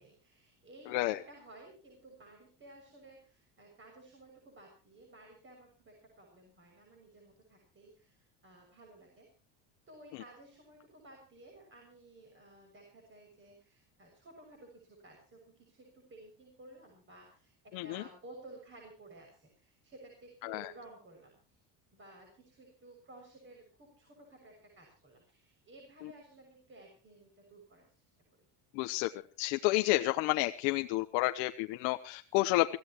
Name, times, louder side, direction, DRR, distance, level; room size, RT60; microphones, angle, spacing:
voice 1, 0.0-9.3 9.9-21.4 21.9-28.1, right 2 dB, 30° right, 1 dB, 6.7 m, -55 dB
voice 2, 0.9-1.2 17.7-18.0 20.4-20.7 28.7-29.1 29.4-32.8, left 19 dB, 80° left, 7 dB, 1.1 m, -30 dB
25.0 x 15.5 x 3.1 m, 0.36 s
cardioid pair, 140°, 42 cm